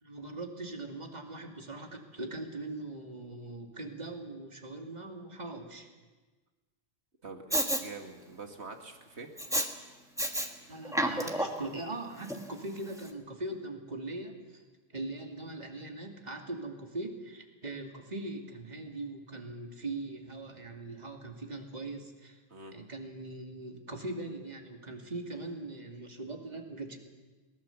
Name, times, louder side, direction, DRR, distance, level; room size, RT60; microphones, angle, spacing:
voice 1, 0.0-5.9 10.7-14.6 14.9-22.4 22.7-27.0, right 2 dB, 30° right, 3 dB, 2.4 m, -41 dB
voice 2, 7.2-9.3 22.5-22.7, right 3 dB, 55° right, 4 dB, 2.1 m, -45 dB
Respiratory sounds, 7.5-7.8 9.4-9.7 10.2-10.5 10.8-11.7 12.3-12.4, equal, 5° right, 1.4 m, -29 dB
21.5 x 19.0 x 7.1 m, 1.3 s
omnidirectional pair, 1.3 m